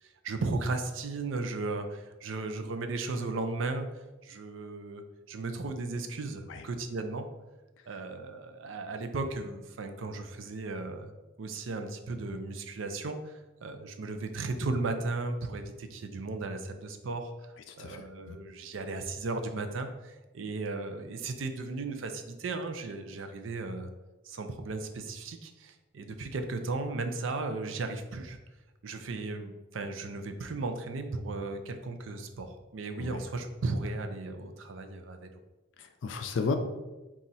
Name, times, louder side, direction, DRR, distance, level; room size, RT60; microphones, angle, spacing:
voice 1, 0.0-3.9 4.2-7.3 7.9-11.1 11.4-23.9 24.2-28.4 28.8-35.3, right 3 dB, 85° right, 7 dB, 0.5 m, -36 dB
voice 2, 17.8-18.4 33.0-33.2 35.8-36.6, left 4 dB, 70° left, 6 dB, 0.4 m, -33 dB
4.2 x 2.4 x 3.9 m, 1.1 s
head